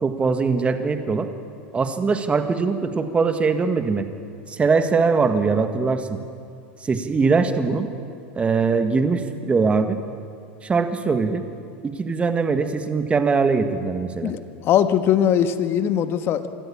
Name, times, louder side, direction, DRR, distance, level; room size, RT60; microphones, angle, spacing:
voice 1, 0.0-1.3 1.7-4.1 4.5-6.2 6.8-7.9 8.4-10.0 10.6-11.4 11.8-14.3, right 4 dB, 20° right, 8 dB, 1.7 m, -21 dB
voice 2, 14.2-16.5, left 9 dB, 45° left, 10 dB, 1.4 m, -20 dB
25.5 x 13.5 x 8.7 m, 2.4 s
hypercardioid pair, 105°, 6 cm